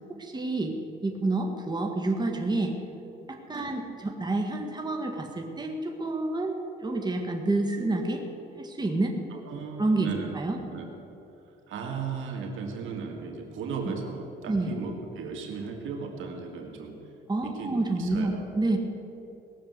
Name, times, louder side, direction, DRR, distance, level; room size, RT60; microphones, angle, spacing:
voice 1, 0.2-0.8 1.0-2.7 3.3-8.2 8.6-9.2 9.8-10.1 10.3-10.6 13.8-13.9 14.5-14.7 17.3-18.8, right 2 dB, 20° right, 2 dB, 1.8 m, -28 dB
voice 2, 9.3-10.3 10.7-10.9 11.7-16.9 17.4-18.5, right 5 dB, 80° right, 1 dB, 2.3 m, -36 dB
19.0 x 7.1 x 8.1 m, 2.8 s
cardioid pair, 90°, 20 cm